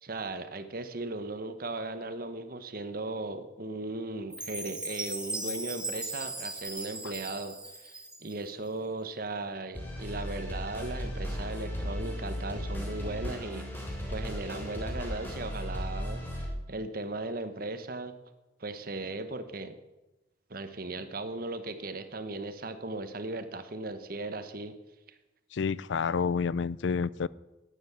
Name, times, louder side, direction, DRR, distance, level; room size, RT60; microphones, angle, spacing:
voice 1, 0.0-18.1 18.6-19.8 20.5-24.7, right 2 dB, 50° right, 1.0 m, -37 dB
Chime, 4.3-8.5, right 2 dB, 5° right, 1.6 m, -38 dB
sound 1, 9.7-16.5, equal, 10° left, 3.2 m, -36 dB
voice 2, 25.5-27.3, left 5 dB, 70° left, 0.4 m, -29 dB
12.5 x 9.7 x 8.1 m
head